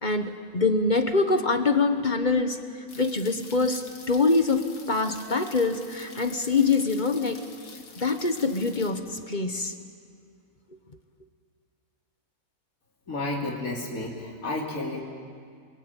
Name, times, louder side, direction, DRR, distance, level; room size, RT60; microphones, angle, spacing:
voice 1, 0.0-2.6 2.9-7.4 8.0-9.7, left 3 dB, 30° left, 8 dB, 1.4 m, -24 dB
sound 1, 2.9-8.9, left 4 dB, 90° left, 2.5 m, -47 dB
voice 2, 13.1-15.0, left 2 dB, 60° left, -1 dB, 3.6 m, -31 dB
29.0 x 22.0 x 9.1 m, 2.2 s
omnidirectional pair, 1.6 m